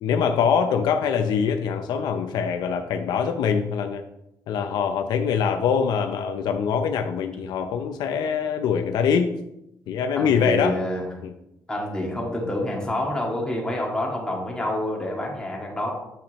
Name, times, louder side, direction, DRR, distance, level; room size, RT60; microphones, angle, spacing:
voice 1, 0.0-4.0 4.5-9.3 9.9-10.8 11.2-11.3, left 7 dB, 80° left, 6 dB, 0.6 m, -23 dB
voice 2, 10.2-11.1 11.7-15.9, left 1 dB, 10° left, -2 dB, 2.1 m, -28 dB
8.6 x 5.8 x 3.1 m, 0.84 s
cardioid pair, 105°, 7 cm